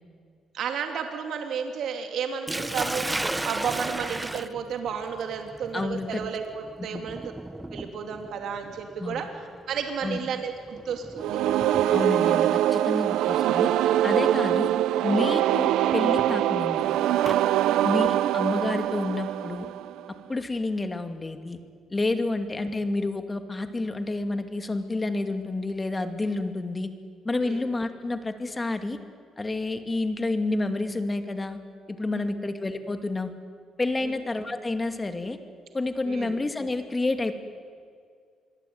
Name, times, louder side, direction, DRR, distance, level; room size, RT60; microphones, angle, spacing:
voice 1, 0.5-7.2 7.7-9.3 9.7-11.4 17.6-17.9 22.2-22.4 27.4-27.6 32.1-32.3 34.0-34.1 36.0-36.3, right 7 dB, 75° right, 4 dB, 2.9 m, -32 dB
Sink (filling or washing), 2.5-12.4 13.5-13.8 14.4-14.5 15.9-17.4, right 2 dB, 15° right, 0.7 m, -35 dB
voice 2, 5.7-6.2 6.9-7.0 9.0-9.3 10.0-10.2 11.9-13.7 14.0-14.7 15.0-16.9 17.8-19.7 20.3-21.6 21.9-26.9 27.2-29.0 29.4-31.6 31.9-33.3 33.8-35.4 35.7-37.3, left 2 dB, 20° left, 7 dB, 2.5 m, -29 dB
sound 1, 11.2-20.1, right 12 dB, 90° right, 0.7 m, -23 dB
26.5 x 22.5 x 9.6 m, 2.1 s
cardioid pair, 90°, 0 cm